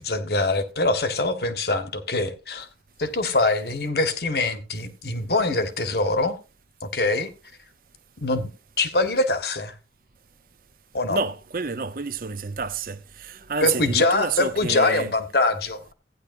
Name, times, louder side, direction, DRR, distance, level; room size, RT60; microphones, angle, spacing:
voice 1, 0.0-2.7 3.0-6.4 6.8-7.3 8.2-8.5 8.8-9.7 10.9-11.2 13.6-15.9, left 2 dB, 60° left, 1.4 m, -23 dB
voice 2, 11.1-15.1, right 5 dB, 50° right, 0.7 m, -29 dB
15.0 x 9.9 x 2.6 m
head